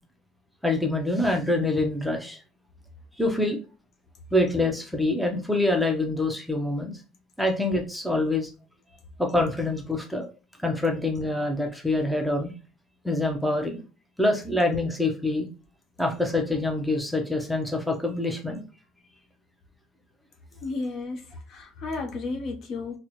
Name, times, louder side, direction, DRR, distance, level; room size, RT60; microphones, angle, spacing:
voice 1, 0.6-2.4 3.2-3.6 4.3-6.9 7.4-8.5 9.2-10.3 10.6-12.5 13.0-13.8 14.2-15.5 16.0-18.6, left 2 dB, ahead, 0.5 m, -25 dB
voice 2, 20.6-21.2 21.5-23.0, left 3 dB, 50° left, 0.6 m, -32 dB
4.1 x 2.1 x 2.9 m
cardioid pair, 155°, 0 cm